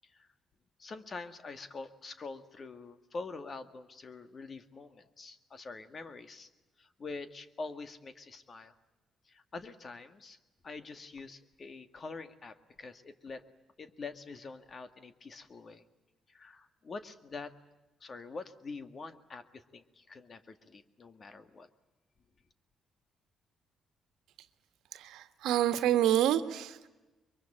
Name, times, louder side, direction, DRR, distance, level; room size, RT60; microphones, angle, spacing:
voice 1, 0.8-6.5 6.8-8.7 9.3-10.4 10.6-13.4 13.8-15.8 16.3-17.5 18.0-21.7, left 3 dB, 40° left, 10 dB, 2.0 m, -45 dB
voice 2, 24.9-26.9, right 11 dB, 90° right, 10 dB, 1.5 m, -28 dB
23.5 x 23.5 x 8.9 m, 1.1 s
cardioid pair, 90°, 0 cm